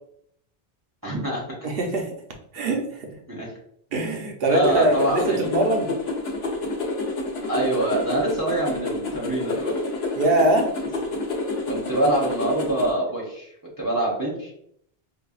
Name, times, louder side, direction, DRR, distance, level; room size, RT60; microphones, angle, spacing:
voice 1, 1.0-1.5 3.3-3.5 4.5-5.5 7.5-9.8 11.7-13.5 13.8-14.5, right 1 dB, 20° right, -4 dB, 0.8 m, -25 dB
voice 2, 1.6-2.2 2.5-3.2 3.9-5.9 10.2-10.7, right 2 dB, 65° right, 2 dB, 0.9 m, -23 dB
sound 1, 4.6-12.9, left 2 dB, 75° left, 1.0 m, -28 dB
5.2 x 2.2 x 2.3 m, 0.68 s
omnidirectional pair, 1.1 m